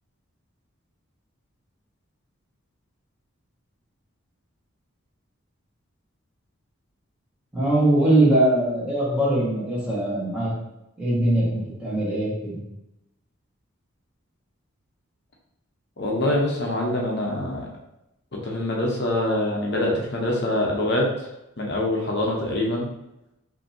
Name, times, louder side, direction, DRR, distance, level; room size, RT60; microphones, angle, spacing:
voice 1, 7.5-10.5 11.0-12.6, right 1 dB, 5° right, -9 dB, 1.4 m, -21 dB
voice 2, 16.0-17.7 18.3-21.1 21.6-22.9, left 1 dB, 55° left, -2 dB, 0.8 m, -24 dB
5.2 x 2.8 x 2.8 m, 0.89 s
head